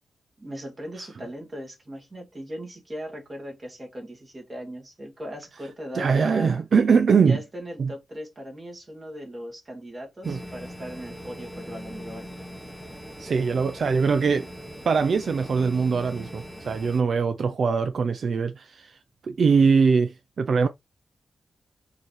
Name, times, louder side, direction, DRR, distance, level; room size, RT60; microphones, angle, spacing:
voice 1, 0.4-6.6 7.2-12.3, equal, 25° right, 1.8 m, -38 dB
voice 2, 5.9-7.4 7.8-7.9 10.3-10.4 13.2-14.5 14.9-19.0 19.2-20.7, right 5 dB, 55° right, 0.4 m, -22 dB
sound 1, 10.2-17.0, equal, 5° right, 1.0 m, -41 dB
4.5 x 2.8 x 3.1 m
wide cardioid pair, 135°, 0 cm